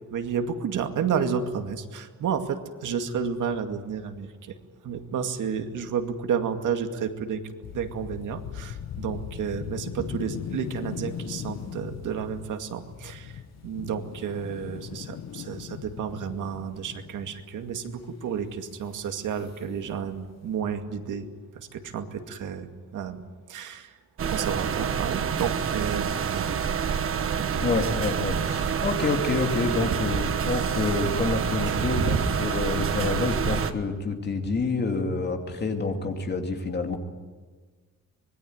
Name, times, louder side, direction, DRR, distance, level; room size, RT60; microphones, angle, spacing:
voice 1, 0.1-4.5 4.8-7.4 7.7-21.3 21.5-23.9 24.3-26.4 27.4-27.5 31.7-32.3, right 7 dB, 75° right, 6 dB, 2.3 m, -31 dB
sound 1, 7.6-17.7 18.8-19.0 19.4-19.6 20.0-20.5, left 9 dB, 55° left, 1.1 m, -39 dB
sound 2, 24.2-33.7, right 7 dB, 45° right, 1.3 m, -27 dB
voice 2, 27.6-37.0, left 4 dB, 35° left, 4 dB, 2.7 m, -28 dB
25.0 x 21.5 x 9.5 m, 1.4 s
wide cardioid pair, 180°, 31 cm